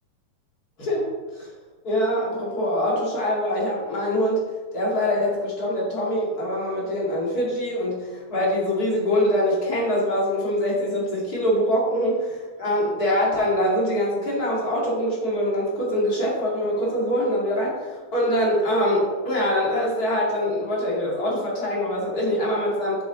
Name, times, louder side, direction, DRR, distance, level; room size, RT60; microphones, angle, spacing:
voice 1, 0.8-1.1 1.4-1.5 1.8-4.4 4.7-23.0, equal, 35° left, -4 dB, 1.7 m, -24 dB
8.0 x 7.9 x 3.8 m, 1.3 s
omnidirectional pair, 4.5 m